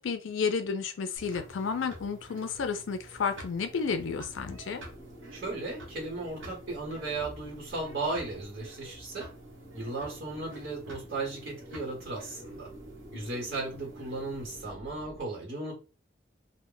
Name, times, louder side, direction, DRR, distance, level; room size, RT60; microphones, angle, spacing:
voice 1, 0.0-4.8 13.1-13.2, left 5 dB, 80° left, 0.4 m, -32 dB
sound 1, 0.9-15.2, right 1 dB, 25° right, 0.8 m, -51 dB
sound 2, 1.2-14.7, right 1 dB, 85° right, 0.8 m, -49 dB
voice 2, 5.3-9.3 9.7-12.7 13.1-15.7, right 3 dB, 55° right, 1.1 m, -36 dB
2.1 x 2.1 x 3.7 m
head